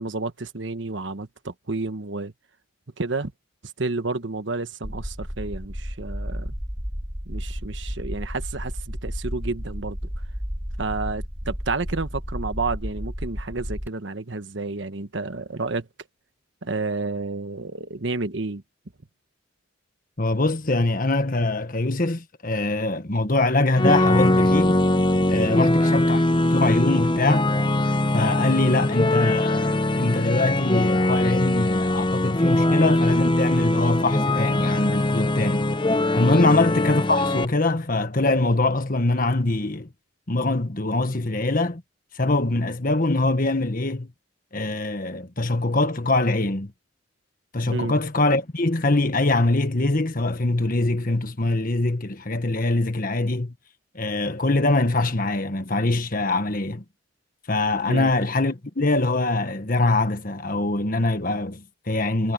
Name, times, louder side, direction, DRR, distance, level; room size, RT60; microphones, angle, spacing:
voice 1, 0.0-2.3 3.0-3.3 3.8-6.5 7.3-10.0 10.8-15.9 16.6-18.6 25.4-25.8 36.3-36.6 47.7-47.9 57.9-58.1, right 3 dB, 65° right, 1.3 m, -30 dB
sound 1, 4.8-13.9, equal, 10° right, 1.6 m, -32 dB
voice 2, 20.2-24.8 25.3-27.5 28.1-35.7 36.1-39.9 40.3-41.8 42.1-44.1 44.5-46.7 47.5-53.5 53.9-56.8 57.5-62.3, left 2 dB, 45° left, 1.5 m, -23 dB
sound 2, 23.7-37.4, left 1 dB, 25° left, 0.8 m, -21 dB
head